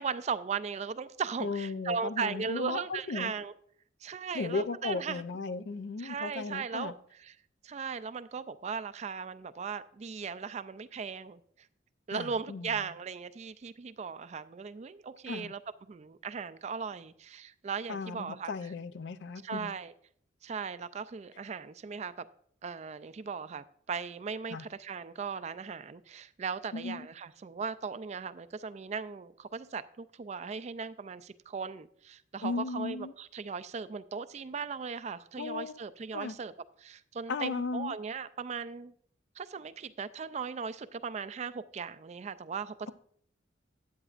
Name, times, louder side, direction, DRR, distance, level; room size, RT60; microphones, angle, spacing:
voice 1, 0.0-3.5 4.0-5.2 6.0-7.4 7.6-11.4 12.1-15.6 15.9-18.5 19.4-19.9 20.4-22.3 22.6-36.5 36.8-38.9 39.4-42.9, right 5 dB, 35° right, 0.3 m, -38 dB
voice 2, 1.4-3.3 4.3-6.9 12.1-12.8 15.3-15.5 17.9-19.8 24.5-24.6 26.7-27.1 32.4-33.1 35.4-35.8 36.1-36.3 37.3-38.0, left 4 dB, 60° left, 0.5 m, -36 dB
13.0 x 8.7 x 2.4 m
head